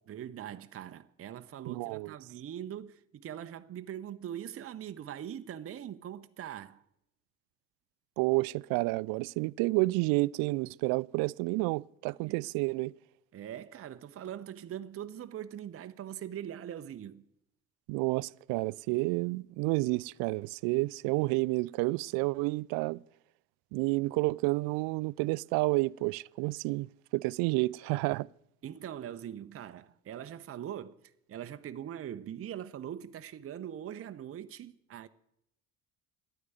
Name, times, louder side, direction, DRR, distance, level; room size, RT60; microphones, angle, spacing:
voice 1, 0.1-6.8 12.3-12.4 13.3-17.2 28.6-31.0 31.3-35.1, right 10 dB, 35° right, 0.8 m, -42 dB
voice 2, 1.7-2.1 8.2-12.9 17.9-23.0 23.7-26.9 27.1-28.3, right 23 dB, 65° right, 0.5 m, -30 dB
12.0 x 9.5 x 9.2 m
hypercardioid pair, 65°, 39 cm